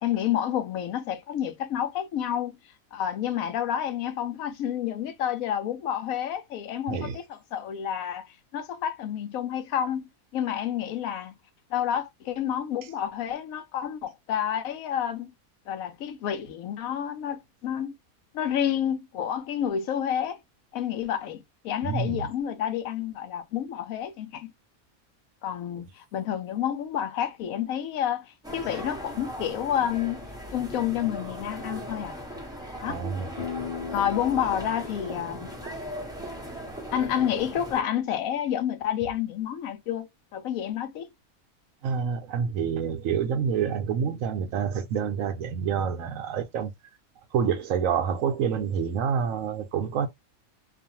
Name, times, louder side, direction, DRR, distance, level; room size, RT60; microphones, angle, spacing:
voice 1, 0.0-2.6 2.9-11.3 11.7-15.3 15.7-17.9 18.3-20.4 20.7-24.5 25.4-32.2 32.8-33.0 33.9-35.5 36.9-41.1, left 10 dB, 80° left, 1.0 m, -29 dB
voice 2, 21.8-22.3 32.9-33.3 41.8-46.7 47.3-50.1, right 7 dB, 70° right, 1.0 m, -27 dB
sound 1, 28.4-37.8, right 1 dB, 5° right, 0.7 m, -38 dB
sound 2, 33.4-38.9, left 8 dB, 40° left, 0.6 m, -42 dB
2.6 x 2.4 x 2.7 m
omnidirectional pair, 1.5 m